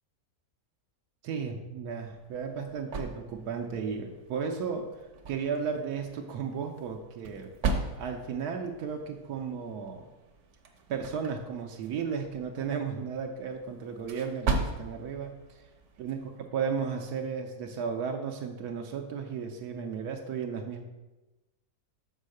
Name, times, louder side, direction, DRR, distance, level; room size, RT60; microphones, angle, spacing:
voice 1, 1.2-4.9 5.3-7.5 8.0-10.1 10.9-15.7 16.0-16.2 16.5-20.8, right 6 dB, 85° right, 3 dB, 1.2 m, -34 dB
sound 1, 2.1-16.5, right 3 dB, 60° right, 1.0 m, -38 dB
5.5 x 4.6 x 6.4 m, 1.1 s
omnidirectional pair, 1.6 m